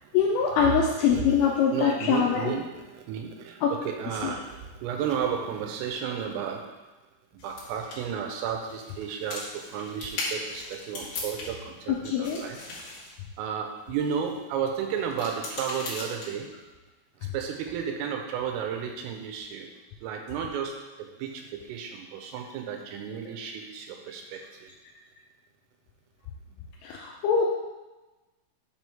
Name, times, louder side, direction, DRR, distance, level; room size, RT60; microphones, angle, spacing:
voice 1, 0.1-2.5 3.6-3.7 4.2-4.3 11.9-12.4 26.8-27.4, left 7 dB, 80° left, -2 dB, 3.1 m, -24 dB
voice 2, 1.1-6.7 7.4-12.7 13.4-16.5 17.3-19.7 20.0-24.7, right 7 dB, 85° right, 3 dB, 3.4 m, -33 dB
sound 1, 7.4-11.8 12.0-14.3 14.9-16.6, left 2 dB, 55° left, 2.4 m, -39 dB
7.3 x 6.2 x 3.5 m, 1.2 s
omnidirectional pair, 5.8 m